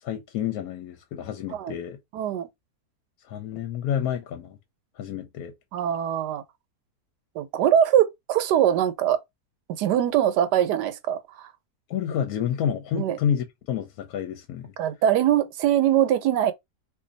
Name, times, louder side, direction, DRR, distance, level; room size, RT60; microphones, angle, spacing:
voice 1, 0.0-2.0 3.3-4.6 5.0-5.5 11.9-14.7, left 9 dB, 70° left, 1.0 m, -29 dB
voice 2, 2.1-2.5 5.7-6.4 7.3-9.2 9.8-11.5 12.9-13.2 14.8-16.5, right 10 dB, 85° right, 1.2 m, -22 dB
2.6 x 2.5 x 3.8 m
omnidirectional pair, 1.8 m